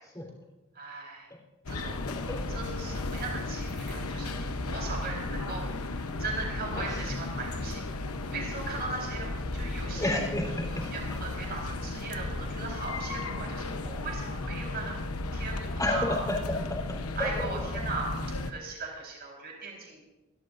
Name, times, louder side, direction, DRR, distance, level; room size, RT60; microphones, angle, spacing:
voice 1, 0.8-1.3 1.7-2.0 2.5-7.8 8.2-10.1 10.9-14.9 15.3-16.2 17.2-18.1 18.4-20.0, right 3 dB, 50° right, -1 dB, 4.3 m, -38 dB
sound 1, 1.7-18.5, left 2 dB, 85° left, 0.9 m, -34 dB
voice 2, 9.9-11.2 15.8-16.6 17.2-17.5, left 1 dB, 15° left, 0 dB, 3.7 m, -31 dB
26.5 x 13.0 x 2.6 m, 1.1 s
head